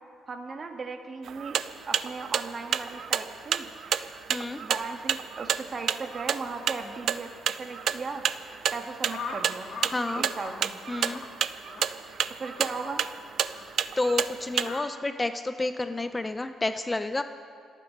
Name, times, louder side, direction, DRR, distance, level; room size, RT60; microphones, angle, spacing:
voice 1, 0.3-1.6 1.9-3.7 4.6-8.2 8.7-9.8 10.1-10.8 12.4-13.0, right 4 dB, 40° right, 5 dB, 1.7 m, -37 dB
sound 1, 1.3-14.7, right 9 dB, 65° right, 0.5 m, -29 dB
voice 2, 4.3-4.6 9.9-10.3 10.9-11.2 14.0-17.2, left 2 dB, 20° left, 9 dB, 0.7 m, -30 dB
sound 2, 9.1-10.0 10.2-10.6 11.0-11.3 11.7-11.9 12.5-12.8 13.5-13.7 14.6-14.8, left 6 dB, 70° left, 2.0 m, -39 dB
27.5 x 9.2 x 5.4 m, 2.2 s
cardioid pair, 90°, 0 cm